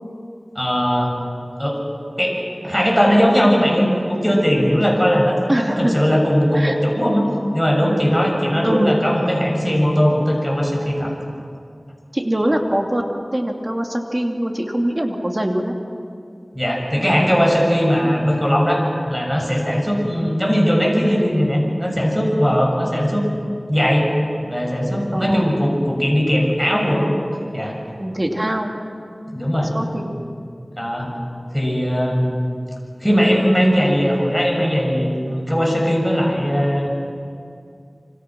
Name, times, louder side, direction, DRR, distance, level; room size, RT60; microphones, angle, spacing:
voice 1, 0.6-1.1 1.6-1.8 2.2-7.2 7.5-11.1 16.5-23.3 23.7-24.1 24.5-27.0 27.5-27.8 29.3-30.1 30.8-31.1 31.5-32.4 33.0-37.1, equal, ahead, -1 dB, 7.0 m, -19 dB
voice 2, 5.5-5.9 6.5-6.8 8.6-9.0 12.1-15.7 25.1-25.5 28.0-28.7 29.7-30.2, right 1 dB, 30° right, 2 dB, 2.7 m, -22 dB
27.0 x 25.5 x 6.2 m, 2.4 s
wide cardioid pair, 40°, 0 cm